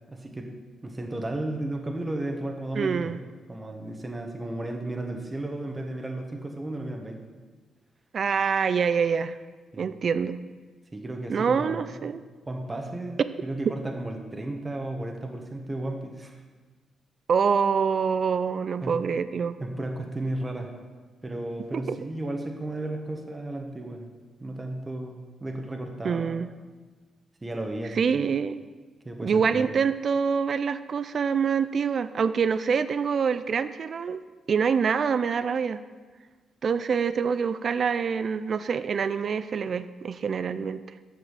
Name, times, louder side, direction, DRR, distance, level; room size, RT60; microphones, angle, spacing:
voice 1, 0.1-0.5 0.8-3.2 3.5-7.2 9.7-9.9 10.9-12.0 12.4-16.4 18.8-19.0 19.6-20.7 21.2-24.1 24.4-26.4 27.4-28.3 29.0-29.7, right 1 dB, 25° right, 2 dB, 1.4 m, -34 dB
voice 2, 2.7-3.2 8.1-9.4 9.8-10.4 11.3-12.2 17.3-19.6 21.7-22.0 26.0-26.5 27.9-28.6 29.2-34.2 34.5-35.8 36.6-40.8, right 6 dB, 55° right, 13 dB, 0.4 m, -25 dB
8.2 x 5.9 x 7.4 m, 1.4 s
supercardioid pair, 60°, 0 cm